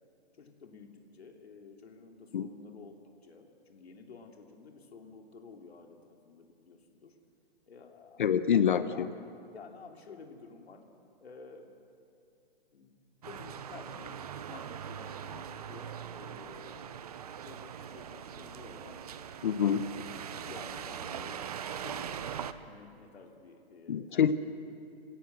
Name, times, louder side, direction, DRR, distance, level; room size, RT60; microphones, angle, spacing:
voice 1, 0.4-7.1 7.7-8.3 8.6-9.2 9.5-10.8 11.2-11.7 12.7-12.9 13.2-14.2 14.5-17.1 17.4-19.0 19.6-21.4 21.8-22.1 22.6-24.3, left 4 dB, 80° left, 3 dB, 3.0 m, -52 dB
voice 2, 8.2-9.1 19.4-19.8 23.9-24.3, left 8 dB, 50° left, 13 dB, 0.9 m, -26 dB
sound 1, 13.2-22.5, right 8 dB, 40° right, 0.8 m, -41 dB
25.5 x 17.0 x 7.9 m, 2.6 s
hypercardioid pair, 170°, 31 cm